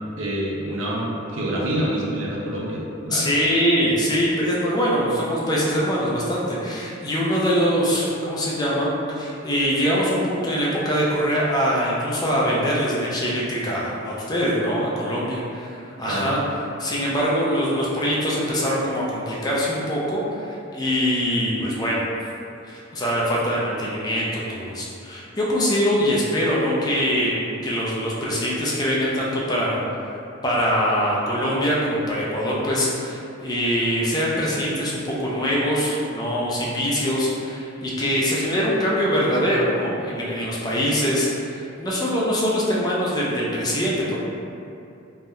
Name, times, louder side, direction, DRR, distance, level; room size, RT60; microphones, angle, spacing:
voice 1, 0.2-3.3 16.1-16.3, right 1 dB, 70° right, -4 dB, 0.6 m, -27 dB
voice 2, 3.1-8.9 9.2-16.4 16.8-22.1 22.6-29.8 30.4-44.2, equal, 20° left, -5 dB, 0.4 m, -23 dB
3.4 x 2.6 x 2.2 m, 2.6 s
head